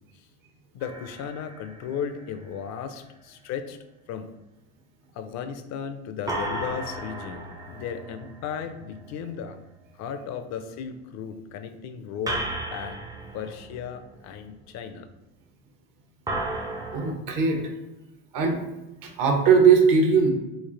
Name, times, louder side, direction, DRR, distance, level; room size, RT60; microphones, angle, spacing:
voice 1, 0.7-3.8 4.1-4.3 5.1-9.6 9.9-13.0 13.3-15.1, left 7 dB, 45° left, 8 dB, 0.5 m, -35 dB
sound 1, 0.8-2.6 6.3-9.5 12.3-14.5 16.3-17.1, right 1 dB, 10° right, 0.5 m, -35 dB
voice 2, 16.9-17.6 18.3-18.6 19.0-20.3, right 5 dB, 55° right, 3 dB, 1.0 m, -19 dB
3.3 x 2.5 x 3.8 m, 0.99 s
supercardioid pair, 100°, 39 cm